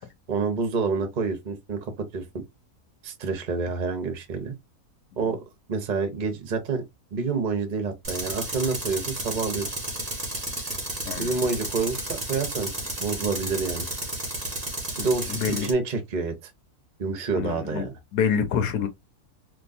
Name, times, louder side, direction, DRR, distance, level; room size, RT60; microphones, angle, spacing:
voice 1, 0.3-2.2 3.0-4.5 5.2-5.4 5.7-6.8 7.1-9.7 11.2-12.7 13.0-13.9 15.0-16.3 17.0-18.0, right 4 dB, 40° right, 0.7 m, -28 dB
Tools, 8.0-15.7, right 1 dB, 15° right, 1.2 m, -32 dB
voice 2, 11.0-11.5 15.0-15.7 17.3-17.9 18.1-18.9, left 7 dB, 90° left, 1.3 m, -27 dB
3.6 x 2.7 x 2.5 m
omnidirectional pair, 1.6 m